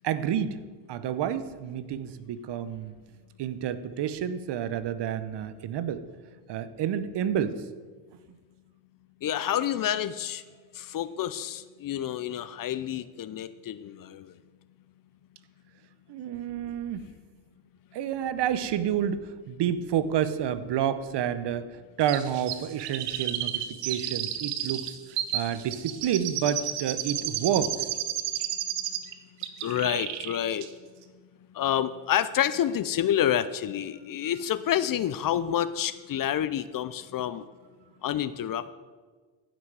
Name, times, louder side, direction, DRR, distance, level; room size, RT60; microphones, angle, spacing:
voice 1, 0.0-0.6 0.9-2.9 3.4-6.0 6.5-7.6 16.1-17.0 17.9-25.0 25.3-27.9, right 9 dB, 55° right, 13 dB, 0.9 m, -29 dB
voice 2, 9.2-10.4 10.8-14.3 29.6-30.7 31.5-37.4 38.0-38.7, left 10 dB, 45° left, 14 dB, 0.6 m, -28 dB
Chirp tweet, 22.1-29.1 29.4-30.4 30.6-30.7, right 12 dB, 90° right, 0.9 m, -32 dB
15.5 x 6.1 x 4.8 m, 1.4 s
supercardioid pair, 85°, 48 cm